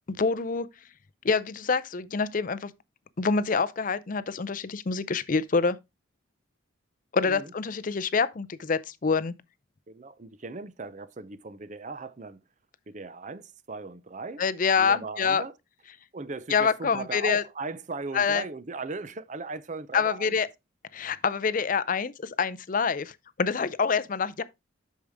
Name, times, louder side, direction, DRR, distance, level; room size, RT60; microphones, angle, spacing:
voice 1, 0.1-0.7 1.2-2.7 3.2-5.8 7.1-9.3 14.4-15.4 16.5-17.4 18.1-18.4 19.9-20.5 20.9-24.4, left 5 dB, 40° left, 0.5 m, -26 dB
voice 2, 9.9-12.4 12.9-14.4 14.7-15.6 16.1-20.4, right 3 dB, 35° right, 0.6 m, -38 dB
8.5 x 6.4 x 3.5 m
head